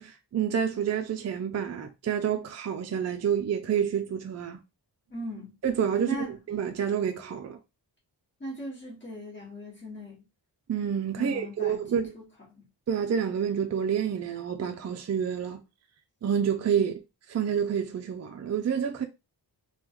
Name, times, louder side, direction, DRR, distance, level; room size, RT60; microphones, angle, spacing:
voice 1, 0.0-4.6 5.6-7.6 10.7-12.1 12.9-15.6 16.2-17.0 17.3-19.0, right 8 dB, 40° right, 0.4 m, -28 dB
voice 2, 5.1-5.5 6.0-6.4 8.4-10.2 11.2-12.3 12.5-12.6 16.8-16.9, equal, 25° left, 1.6 m, -39 dB
3.5 x 2.3 x 3.0 m
wide cardioid pair, 150°, 43 cm